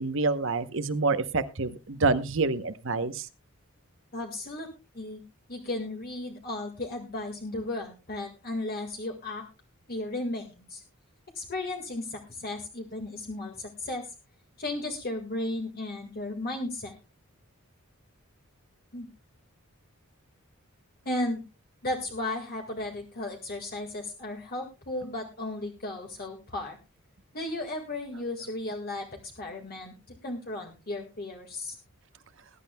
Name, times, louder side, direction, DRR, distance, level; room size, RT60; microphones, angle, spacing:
voice 1, 0.0-3.3, right 3 dB, 60° right, 10 dB, 0.9 m, -27 dB
voice 2, 4.1-4.7 4.9-5.2 5.5-9.4 9.9-10.8 11.3-14.1 14.6-16.9 18.9-19.1 21.0-21.4 21.8-26.8 27.3-31.7, left 2 dB, 45° left, 2 dB, 1.9 m, -35 dB
20.5 x 11.0 x 2.3 m, 0.28 s
head